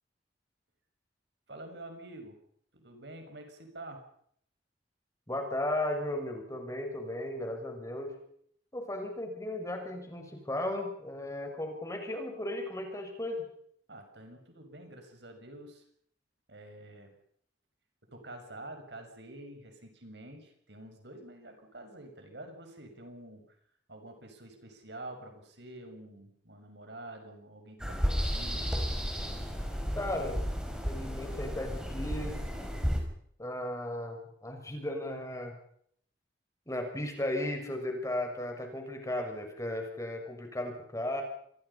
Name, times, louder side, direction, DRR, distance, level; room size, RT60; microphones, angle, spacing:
voice 1, 1.5-2.4 2.7-4.0 13.9-15.8 16.5-17.2 18.1-23.6 23.9-28.7, right 1 dB, 65° right, 5 dB, 6.5 m, -48 dB
voice 2, 5.3-8.1 8.7-13.4 29.9-30.4 30.9-32.4 33.4-35.5 36.7-41.2, left 1 dB, 20° left, 4 dB, 6.5 m, -35 dB
sound 1, 27.8-33.0, equal, 5° right, 5.1 m, -33 dB
27.0 x 23.0 x 5.7 m, 0.66 s
head